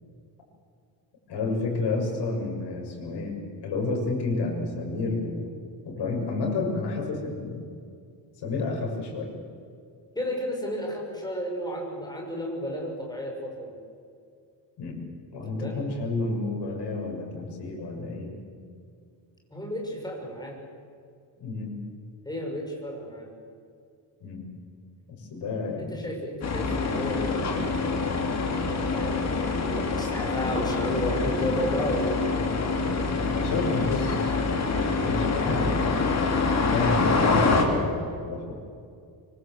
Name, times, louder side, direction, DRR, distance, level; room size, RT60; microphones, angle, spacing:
voice 1, 1.3-5.5 5.8-7.6 8.4-9.3 14.8-15.0 15.3-18.3 21.4-21.8 24.2-24.5 25.3-26.1 33.3-34.3 35.0-38.5, left 3 dB, 65° left, 1 dB, 6.8 m, -30 dB
voice 2, 10.1-13.8 15.3-15.8 19.5-20.6 22.2-23.3 25.8-32.2, equal, 10° left, 0 dB, 6.5 m, -33 dB
sound 1, 26.4-37.6, left 4 dB, 35° left, 3.5 m, -25 dB
25.0 x 24.5 x 7.8 m, 2.3 s
cardioid pair, 160°, 43 cm